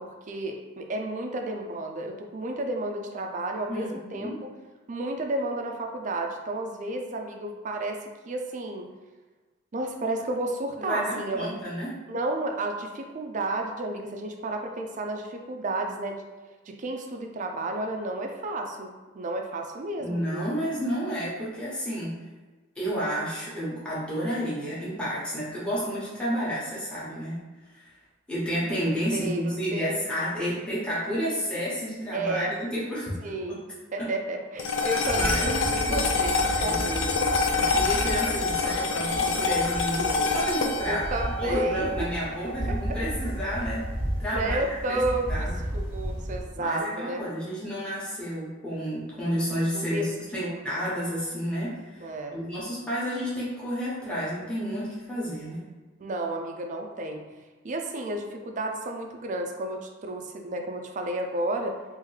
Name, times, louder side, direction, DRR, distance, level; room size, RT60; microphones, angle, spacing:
voice 1, 0.0-4.5 4.9-8.9 9.7-11.5 12.1-16.2 16.7-18.9 19.1-20.6 29.1-29.9 32.1-32.5 33.2-33.6 33.9-37.2 40.9-41.9 42.7-43.0 44.3-47.3 49.7-50.1 50.3-50.6 52.0-52.4 56.0-57.2 57.6-61.8, right 2 dB, 40° right, 3 dB, 0.4 m, -32 dB
voice 2, 3.7-4.4 10.8-11.9 20.0-22.2 22.8-27.4 27.7-27.9 28.3-33.1 33.5-33.6 34.0-34.1 35.2-36.1 36.5-36.8 37.5-41.0 41.4-43.8 44.2-44.6 44.9-45.0 45.3-45.6 46.6-55.6, equal, 5° left, -9 dB, 0.9 m, -31 dB
sound 1, 34.6-43.1, left 3 dB, 70° left, 0.4 m, -27 dB
sound 2, 35.0-46.4, equal, 30° left, 0.8 m, -34 dB
3.5 x 2.6 x 3.2 m, 1.3 s
head